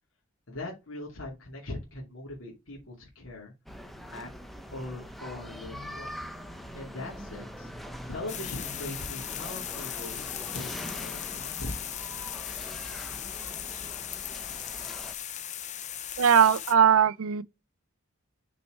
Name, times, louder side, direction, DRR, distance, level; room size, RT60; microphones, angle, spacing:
voice 1, 0.5-3.5 4.1-4.3 4.7-6.1 6.7-7.7 8.1-12.0, left 2 dB, 70° left, 2.5 m, -40 dB
sound 1, 3.7-15.1, equal, ahead, 0.7 m, -42 dB
sound 2, 8.3-16.7, left 10 dB, 35° left, 0.6 m, -38 dB
voice 2, 16.2-17.4, right 8 dB, 90° right, 0.5 m, -20 dB
6.2 x 4.3 x 4.4 m
head